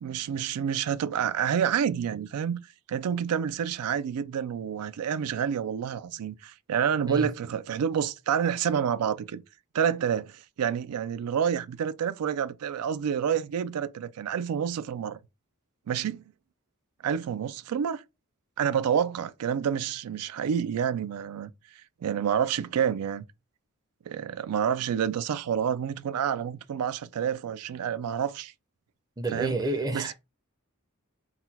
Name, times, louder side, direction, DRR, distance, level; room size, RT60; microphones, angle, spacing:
voice 1, 0.0-2.6 2.9-9.4 9.7-15.2 15.9-16.2 17.0-18.0 18.6-21.5 22.0-23.2 24.1-28.5 29.3-29.6 29.9-30.1, right 8 dB, 90° right, 0.4 m, -28 dB
voice 2, 29.2-30.1, right 2 dB, 15° right, 0.5 m, -29 dB
4.0 x 2.2 x 4.0 m
head